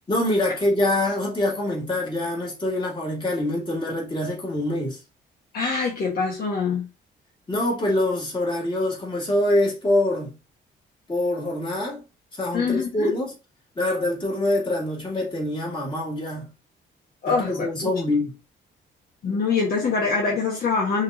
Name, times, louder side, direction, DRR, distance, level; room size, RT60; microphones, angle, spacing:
voice 1, 0.1-5.0 7.5-10.3 11.1-12.0 12.3-13.3 13.8-16.5 17.3-18.4, left 1 dB, 25° left, 2.5 m, -25 dB
voice 2, 5.5-6.9 12.5-13.1 17.2-17.9 19.2-21.0, left 5 dB, 50° left, 1.3 m, -24 dB
5.5 x 3.1 x 2.6 m
cardioid pair, 90°, 20 cm